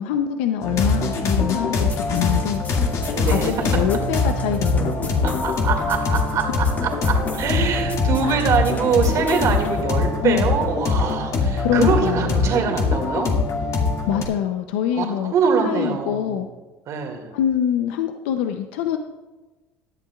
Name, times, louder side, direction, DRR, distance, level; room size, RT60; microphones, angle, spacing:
voice 1, 0.0-2.6 3.2-5.4 8.2-8.6 10.2-10.5 11.6-12.5 14.1-15.3 15.6-16.5 17.3-19.0, left 9 dB, 85° left, 7 dB, 0.6 m, -25 dB
sound 1, 0.6-14.2, left 3 dB, 55° left, 2.1 m, -23 dB
sound 2, 1.8-9.8, left 3 dB, 25° left, 1.4 m, -35 dB
voice 2, 3.1-3.5 5.2-13.4 14.9-16.4 16.9-17.3, right 6 dB, 55° right, 2 dB, 2.2 m, -23 dB
17.0 x 11.0 x 2.4 m, 1.2 s
supercardioid pair, 90°, 7 cm